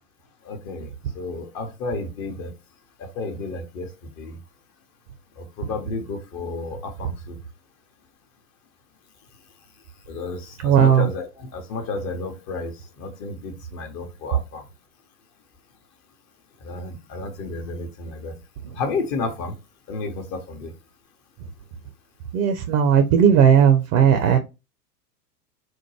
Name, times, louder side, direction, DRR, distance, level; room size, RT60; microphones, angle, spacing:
voice 1, 0.4-2.5 3.0-3.9 4.2-4.4 5.4-7.4 10.1-14.6 16.6-18.4 18.8-19.6 19.9-20.7 24.1-24.3, left 3 dB, 35° left, 0.9 m, -32 dB
voice 2, 10.6-11.1 22.3-24.4, right 8 dB, 35° right, 0.6 m, -16 dB
4.4 x 2.2 x 3.1 m
figure-of-eight pair, 95°, 49 cm